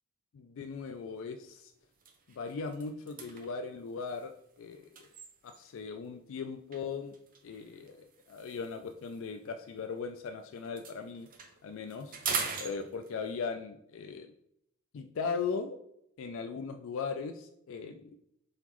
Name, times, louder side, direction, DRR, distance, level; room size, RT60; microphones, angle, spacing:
voice 1, 0.3-1.7 2.3-4.3 4.6-4.9 5.4-7.1 7.4-11.3 11.6-12.1 12.6-14.3 14.9-15.8 16.2-18.2, left 5 dB, 65° left, 7 dB, 0.4 m, -38 dB
sound 1, 0.8-1.0 1.4-1.6 1.9-5.9 6.7-10.3 10.6-13.4, right 5 dB, 40° right, 0.6 m, -42 dB
4.0 x 3.9 x 3.0 m, 0.74 s
head